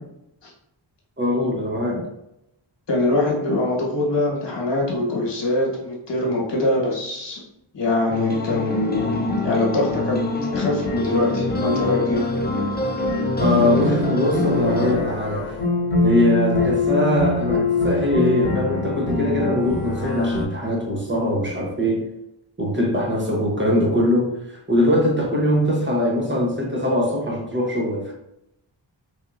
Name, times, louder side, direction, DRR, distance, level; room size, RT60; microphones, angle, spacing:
voice 1, 1.2-2.0 13.4-15.6 16.0-22.1 22.6-28.1, left 1 dB, 25° right, -2 dB, 0.9 m, -22 dB
voice 2, 2.9-7.4 7.7-10.2 10.5-12.2, left 2 dB, 65° left, -3 dB, 1.3 m, -23 dB
sound 1, 8.1-14.9, left 1 dB, 20° left, 0.5 m, -26 dB
sound 2, 8.7-20.5, left 3 dB, 85° left, 0.8 m, -25 dB
3.3 x 2.7 x 2.5 m, 0.83 s
cardioid pair, 50°, 47 cm